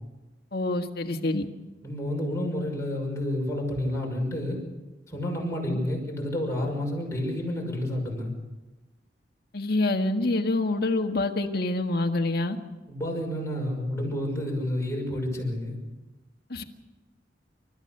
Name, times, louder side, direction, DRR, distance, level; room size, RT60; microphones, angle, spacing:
voice 1, 0.5-1.5 5.7-5.8 9.5-12.6 16.5-16.6, left 2 dB, 60° left, 5 dB, 1.6 m, -26 dB
voice 2, 1.8-4.6 5.1-8.3 12.9-15.8, left 1 dB, 15° left, -1 dB, 5.9 m, -30 dB
30.0 x 14.0 x 6.7 m, 1.1 s
head